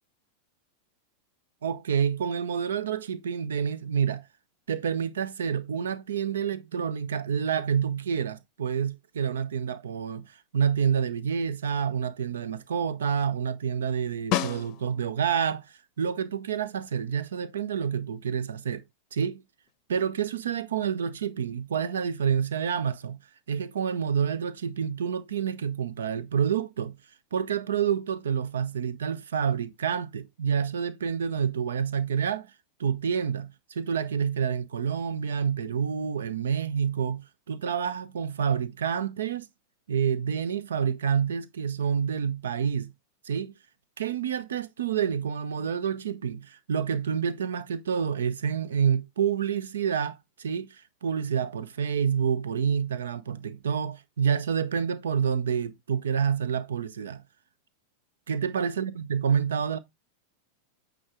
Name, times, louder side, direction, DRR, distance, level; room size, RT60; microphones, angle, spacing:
voice 1, 1.6-4.2 4.7-18.8 19.1-19.4 19.9-23.2 23.5-27.0 27.3-32.5 32.8-39.5 39.9-42.9 43.2-43.5 44.0-57.2 58.3-59.8, right 7 dB, 65° right, 0.7 m, -28 dB
Snare drum, 14.3-15.2 19.7-19.8, left 12 dB, 40° left, 0.6 m, -30 dB
8.7 x 3.7 x 3.6 m
figure-of-eight pair, 90°, 0 cm